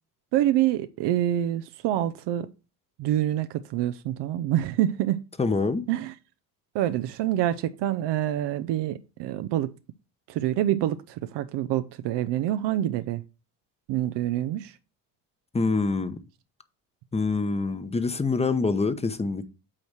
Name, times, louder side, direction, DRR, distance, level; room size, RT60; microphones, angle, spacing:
voice 1, 0.3-2.5 3.0-5.2 5.9-6.1 6.7-9.7 10.3-13.2 13.9-14.7, right 12 dB, 75° right, 0.6 m, -26 dB
voice 2, 5.4-5.9 15.5-16.2 17.1-19.5, left 4 dB, 15° left, 0.8 m, -25 dB
8.6 x 3.0 x 6.4 m
cardioid pair, 85°, 43 cm